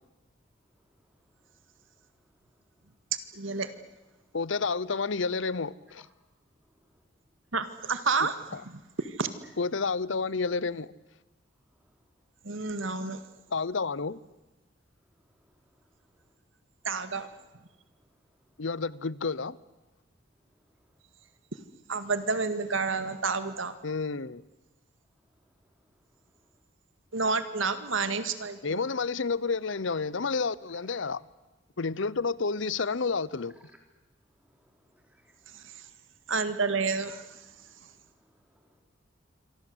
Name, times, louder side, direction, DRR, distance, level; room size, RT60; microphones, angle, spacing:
voice 1, 3.3-3.7 7.5-8.4 8.7-9.3 12.4-13.2 16.8-17.3 21.9-23.7 27.1-28.8 35.5-35.9 36.3-37.4, right 4 dB, 80° right, 10 dB, 2.0 m, -30 dB
voice 2, 4.3-6.1 8.2-8.3 9.6-10.9 13.5-14.2 18.6-19.6 23.8-24.4 28.6-31.2 31.8-33.5, left 4 dB, 75° left, 20 dB, 0.8 m, -30 dB
voice 3, 34.5-35.8 37.5-38.8, equal, 5° right, 3 dB, 4.0 m, -66 dB
27.0 x 24.5 x 8.0 m, 1.1 s
head